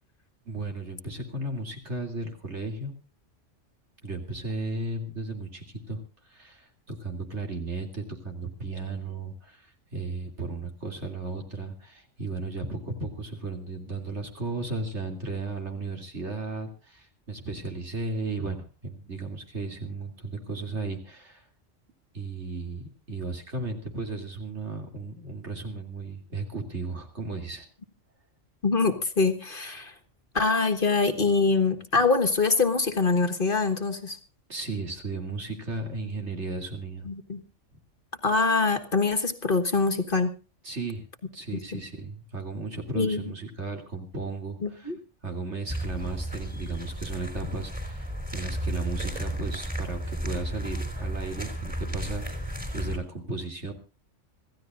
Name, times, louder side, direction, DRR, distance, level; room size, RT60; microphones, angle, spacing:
voice 1, 0.4-3.0 4.0-6.0 6.3-21.4 22.1-27.6 34.5-37.1 40.6-41.0 41.3-44.9 45.2-53.7, right 3 dB, 60° right, 3 dB, 3.3 m, -35 dB
voice 2, 28.6-29.9 30.3-34.2 37.1-37.4 38.2-40.3 41.7-41.8 42.9-43.3 44.6-44.9, left 4 dB, 45° left, 9 dB, 1.6 m, -24 dB
sound 1, 45.7-53.0, right 1 dB, 5° right, 3.7 m, -33 dB
26.5 x 15.0 x 2.5 m, 0.32 s
omnidirectional pair, 1.3 m